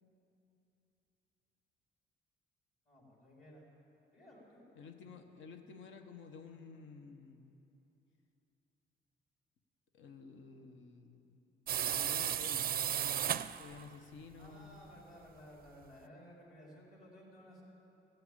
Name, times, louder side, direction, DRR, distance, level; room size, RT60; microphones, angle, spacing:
voice 1, 2.9-3.7 4.1-4.6 14.3-17.6, equal, 45° left, -4 dB, 3.7 m, -56 dB
voice 2, 4.7-7.5 9.9-11.4 11.8-12.7 13.6-14.8, left 5 dB, 75° left, 6 dB, 1.1 m, -52 dB
sound 1, 11.7-13.8, right 10 dB, 45° right, 0.4 m, -34 dB
15.5 x 8.0 x 8.7 m, 3.0 s
cardioid pair, 90°, 20 cm